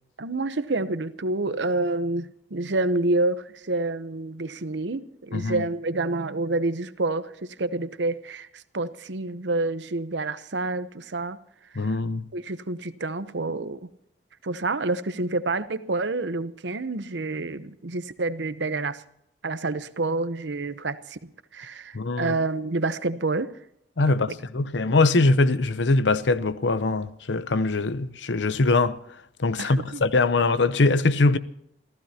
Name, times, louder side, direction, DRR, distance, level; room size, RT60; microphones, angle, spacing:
voice 1, 0.2-11.4 12.3-13.8 14.4-19.0 19.4-21.2 21.5-23.5 24.1-24.2 29.6-30.0, right 2 dB, 85° right, 0.9 m, -28 dB
voice 2, 5.3-5.6 11.7-12.3 21.9-22.4 24.0-29.0 29.4-31.4, left 3 dB, 90° left, 0.7 m, -22 dB
28.0 x 15.0 x 2.9 m
head